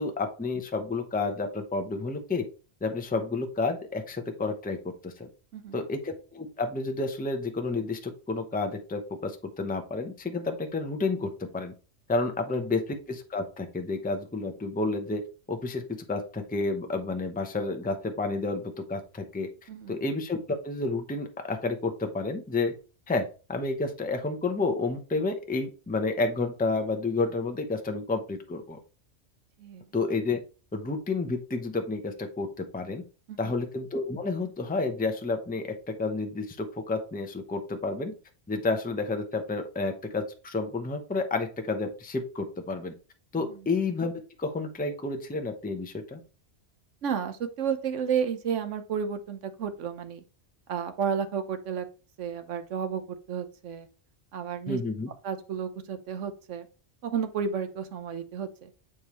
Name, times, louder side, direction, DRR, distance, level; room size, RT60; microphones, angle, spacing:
voice 1, 0.0-2.5 2.8-4.8 5.0-5.3 5.7-11.7 12.1-15.2 15.5-19.5 19.9-22.7 23.1-28.8 29.9-30.4 30.7-33.0 33.4-38.1 38.5-42.9 43.3-44.1 44.4-46.2 54.7-55.1, left 3 dB, 10° left, 6 dB, 0.6 m, -30 dB
voice 2, 5.5-5.8 12.5-12.7 19.7-20.0 29.6-29.8 33.3-33.5 43.4-43.6 47.0-50.2 50.7-51.9 52.2-53.9 54.3-54.8 55.2-56.7 57.0-58.7, right 7 dB, 85° right, 8 dB, 1.2 m, -32 dB
7.1 x 4.9 x 3.0 m, 0.35 s
omnidirectional pair, 1.2 m